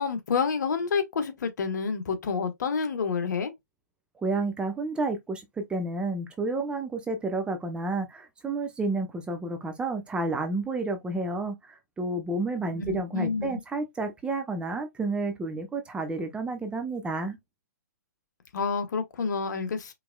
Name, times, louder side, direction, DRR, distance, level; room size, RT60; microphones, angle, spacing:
voice 1, 0.0-3.5 12.7-13.6 18.5-19.9, left 5 dB, 65° left, 1.2 m, -28 dB
voice 2, 4.2-17.4, right 2 dB, 10° right, 0.7 m, -30 dB
4.7 x 3.4 x 2.2 m
hypercardioid pair, 130°, 10 cm